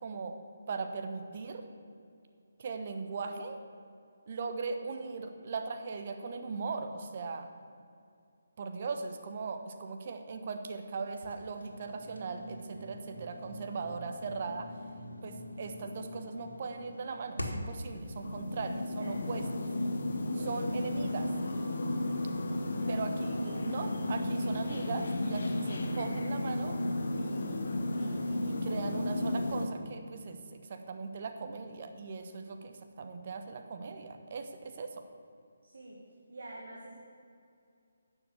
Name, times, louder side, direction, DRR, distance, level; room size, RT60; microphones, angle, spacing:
voice 1, 0.0-1.7 2.6-3.6 4.3-7.5 8.6-14.7 15.2-19.4 20.3-21.3 22.9-26.8 27.2-27.7 28.0-35.0, right 4 dB, 40° right, 6 dB, 1.1 m, -39 dB
sound 1, 11.2-17.8, left 1 dB, 85° left, 2.0 m, -44 dB
sound 2, 17.8-29.7, left 1 dB, 50° left, 1.3 m, -33 dB
voice 2, 35.6-36.0 36.3-37.0, right 2 dB, 55° right, -3 dB, 1.9 m, -47 dB
11.0 x 7.1 x 8.3 m, 2.4 s
figure-of-eight pair, 150°, 0 cm